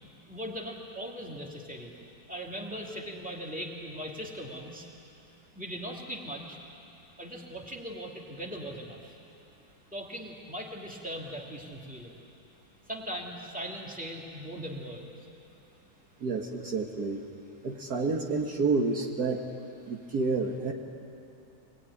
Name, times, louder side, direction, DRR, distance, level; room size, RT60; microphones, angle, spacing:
voice 1, 0.0-1.9 2.3-4.9 5.5-6.6 7.2-9.2 9.9-12.2 12.8-15.1, equal, 5° right, -1 dB, 2.5 m, -39 dB
voice 2, 16.2-17.2 17.6-19.4 19.8-20.7, right 4 dB, 55° right, 1 dB, 1.9 m, -29 dB
24.5 x 20.0 x 9.9 m, 2.7 s
omnidirectional pair, 2.0 m